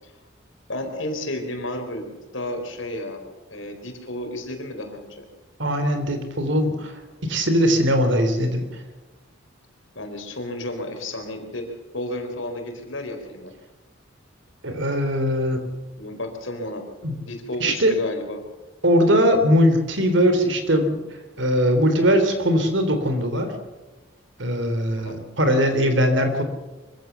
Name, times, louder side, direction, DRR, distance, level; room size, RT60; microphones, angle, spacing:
voice 1, 0.7-3.2 3.5-5.2 10.0-11.7 11.9-13.5 16.0-16.8 17.2-18.4 24.9-25.2, left 1 dB, 70° left, 5 dB, 4.2 m, -32 dB
voice 2, 5.6-6.9 7.2-8.7 14.6-15.6 17.0-17.2 17.6-18.0 18.8-21.0 21.4-23.5 24.4-26.4, equal, 65° right, 8 dB, 3.5 m, -20 dB
24.5 x 15.5 x 7.0 m, 1.1 s
head